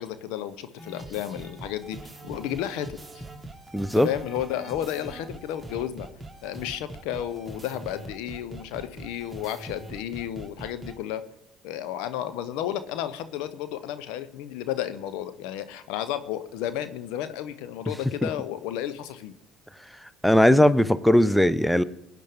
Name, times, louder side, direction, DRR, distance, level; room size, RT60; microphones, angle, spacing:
voice 1, 0.0-3.2 3.9-6.1 6.4-11.2 11.6-19.3, left 11 dB, 70° left, 11 dB, 0.8 m, -32 dB
sound 1, 0.8-11.0, right 2 dB, 10° right, 1.9 m, -42 dB
voice 2, 3.7-4.1 20.2-21.8, left 1 dB, 5° left, 16 dB, 0.7 m, -18 dB
22.0 x 9.3 x 3.6 m, 0.85 s
figure-of-eight pair, 55°, 0 cm